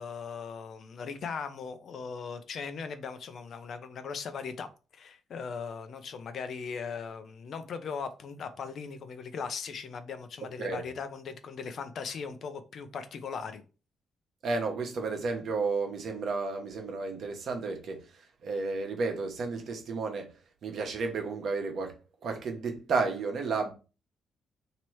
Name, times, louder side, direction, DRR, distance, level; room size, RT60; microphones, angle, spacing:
voice 1, 0.0-13.6, left 5 dB, 60° left, 0.6 m, -39 dB
voice 2, 14.4-20.3 20.6-23.7, right 4 dB, 60° right, 1.0 m, -32 dB
3.0 x 2.9 x 4.5 m
cardioid pair, 90°, 0 cm